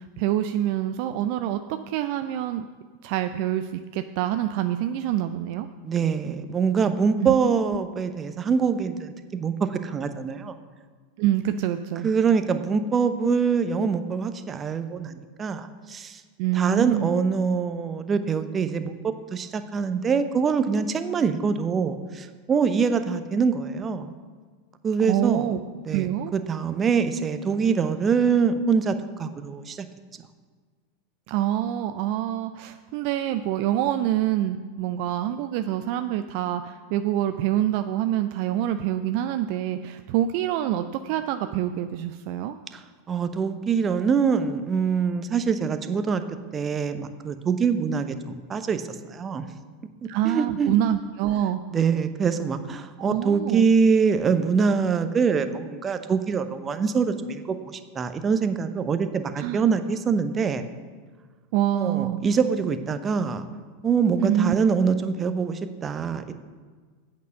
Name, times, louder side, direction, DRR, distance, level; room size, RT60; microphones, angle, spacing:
voice 1, 0.0-1.6 1.9-2.7 3.0-5.7 7.2-7.4 11.2-12.1 16.4-17.2 25.0-25.6 25.9-26.3 31.3-42.6 50.1-51.6 53.0-53.7 59.4-59.6 61.5-62.2 64.2-64.6, right 12 dB, 50° right, 9 dB, 0.4 m, -26 dB
voice 2, 5.8-10.5 12.0-16.2 16.5-19.0 19.3-24.1 24.8-25.5 25.9-29.8 42.7-42.8 43.1-46.2 46.5-48.8 49.1-49.4 50.0-50.8 51.7-60.6 61.7-63.5 63.8-66.3, right 5 dB, 20° right, 9 dB, 0.7 m, -24 dB
8.3 x 6.6 x 7.0 m, 1.5 s
figure-of-eight pair, 90°, 0 cm